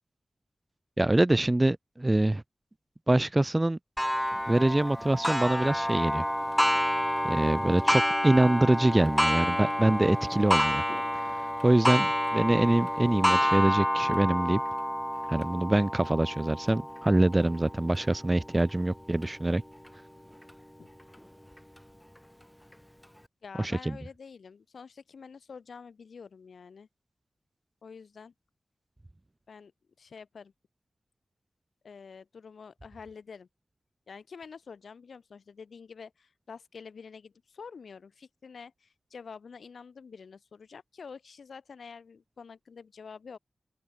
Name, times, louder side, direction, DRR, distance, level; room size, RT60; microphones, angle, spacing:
voice 1, 1.0-2.4 3.1-3.8 4.5-6.2 7.3-10.8 11.2-14.6 15.3-19.6 23.6-24.0, right 1 dB, 20° right, 0.7 m, -25 dB
Clock, 4.0-19.3 19.9-20.0 20.5-20.6 21.6-21.7, equal, 5° left, 1.4 m, -29 dB
voice 2, 23.4-26.9 27.8-28.3 29.5-29.7 30.0-30.5 31.8-33.5 34.1-43.4, left 5 dB, 85° left, 6.3 m, -47 dB
open air
wide cardioid pair, 115°, 0 cm